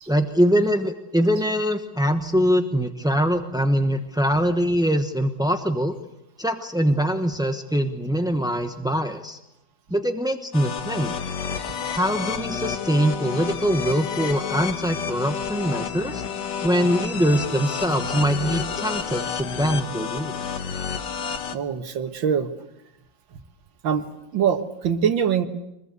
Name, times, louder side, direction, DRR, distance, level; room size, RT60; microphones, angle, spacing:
voice 1, 0.1-5.9 6.4-9.4 9.9-11.1 11.9-16.2 16.6-20.4, equal, 5° right, 7 dB, 0.5 m, -23 dB
sound 1, 10.5-21.5, left 7 dB, 65° left, 1.9 m, -30 dB
voice 2, 21.5-22.5 23.8-24.1 24.3-25.5, right 7 dB, 75° right, 9 dB, 2.2 m, -23 dB
24.5 x 21.5 x 8.3 m, 0.85 s
omnidirectional pair, 2.1 m